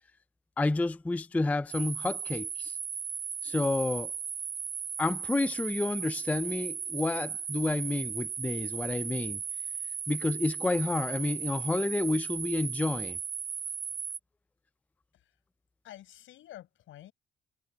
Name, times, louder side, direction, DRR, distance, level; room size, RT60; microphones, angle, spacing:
voice 1, 0.6-2.8 3.4-4.1 5.0-9.4 10.1-13.2, left 2 dB, 5° left, 0.4 m, -30 dB
sound 1, 1.7-14.2, right 7 dB, 40° right, 1.1 m, -36 dB
voice 2, 15.8-17.1, left 13 dB, 80° left, 6.1 m, -49 dB
cardioid pair, 90°, 20 cm